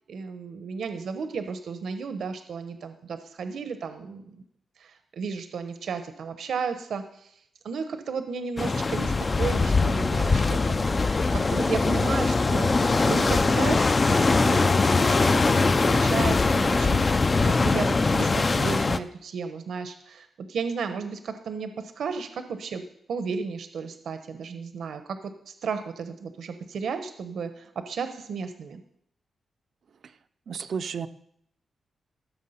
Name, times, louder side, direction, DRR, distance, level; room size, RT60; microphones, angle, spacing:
voice 1, 0.1-4.3 4.8-7.3 7.6-9.1 9.4-15.2 15.4-18.3 18.6-22.8 23.1-28.8, right 5 dB, 65° right, 9 dB, 0.9 m, -34 dB
sound 1, 8.6-19.0, left 3 dB, 25° left, 0.5 m, -22 dB
voice 2, 30.5-31.1, right 6 dB, 50° right, 12 dB, 0.6 m, -31 dB
15.0 x 7.2 x 5.7 m, 0.71 s
wide cardioid pair, 175°, 0 cm